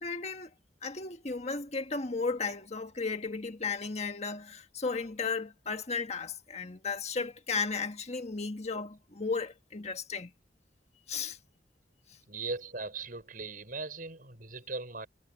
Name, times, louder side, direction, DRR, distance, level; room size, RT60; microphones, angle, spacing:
voice 1, 0.0-0.5 0.8-10.3 11.1-11.4 12.1-12.2, left 4 dB, 40° left, 1.6 m, -34 dB
voice 2, 12.3-15.1, right 3 dB, 50° right, 6.3 m, -39 dB
head